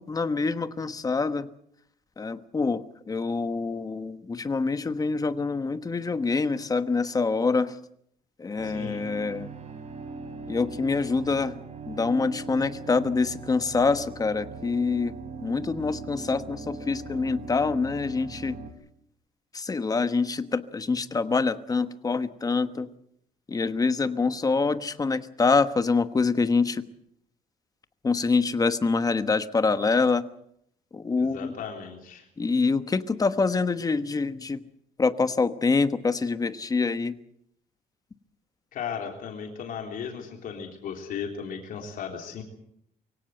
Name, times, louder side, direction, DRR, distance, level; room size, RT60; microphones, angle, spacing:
voice 1, 0.0-1.5 2.2-7.8 8.4-9.5 10.5-11.6 11.9-15.1 15.4-18.6 19.5-22.9 23.5-26.8 28.0-30.2 30.9-31.5 32.4-34.6 35.0-37.1, left 4 dB, 25° left, 11 dB, 1.2 m, -25 dB
voice 2, 8.6-9.0 31.2-32.3 38.7-42.4, left 7 dB, 65° left, 2 dB, 3.6 m, -36 dB
sound 1, 8.6-18.7, right 3 dB, 45° right, 3.3 m, -40 dB
23.5 x 17.0 x 7.8 m, 0.73 s
cardioid pair, 125°, 15 cm